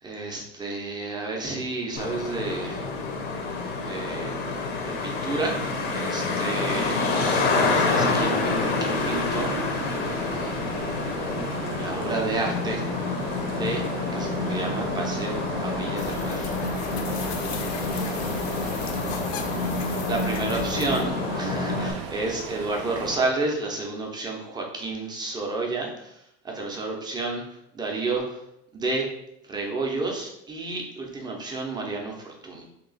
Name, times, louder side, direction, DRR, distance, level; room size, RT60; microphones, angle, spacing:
voice 1, 0.0-2.9 3.8-4.5 4.8-7.2 7.5-9.6 11.7-12.8 13.6-13.9 14.1-16.5 20.1-28.4 28.7-29.1 29.4-32.6, right 3 dB, 15° right, 0 dB, 0.5 m, -31 dB
Traffic noise roadway noise, 2.0-21.9, left 3 dB, 30° left, 0.6 m, -28 dB
sound 1, 7.2-23.2, right 6 dB, 55° right, 0.5 m, -37 dB
sound 2, 16.0-21.0, left 7 dB, 90° left, 0.6 m, -37 dB
2.9 x 2.8 x 4.0 m, 0.79 s
cardioid pair, 155°, 31 cm